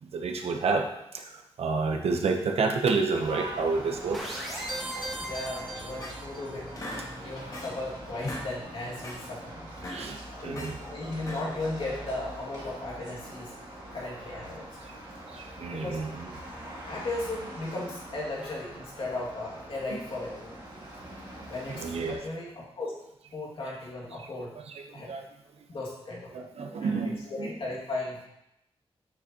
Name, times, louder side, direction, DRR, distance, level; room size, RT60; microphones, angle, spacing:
voice 1, 0.0-0.9 1.1-4.5 4.9-5.1 9.8-10.8 14.8-14.9 15.3-16.3 21.7-22.2 24.2-24.3 24.7-25.3 26.3-27.6, right 4 dB, 80° right, 3 dB, 1.0 m, -30 dB
sound 1, 3.1-22.2, right 1 dB, 40° right, 2.5 m, -43 dB
sound 2, 4.1-6.6, right 1 dB, ahead, 1.6 m, -37 dB
voice 2, 5.2-6.7 7.2-9.7 10.3-13.5 13.9-14.7 15.7-16.1 16.8-20.6 21.5-22.9 23.3-24.5 24.9-25.1 25.7-26.3 26.8-27.0 27.3-28.3, left 2 dB, 55° left, -4 dB, 2.3 m, -36 dB
sound 3, 5.7-6.4 6.8-7.9 8.1-8.5 8.8-9.2 9.7-10.8 11.2-11.7, left 1 dB, 35° left, 1.2 m, -40 dB
7.9 x 6.9 x 3.0 m, 0.84 s
wide cardioid pair, 130°, 10 cm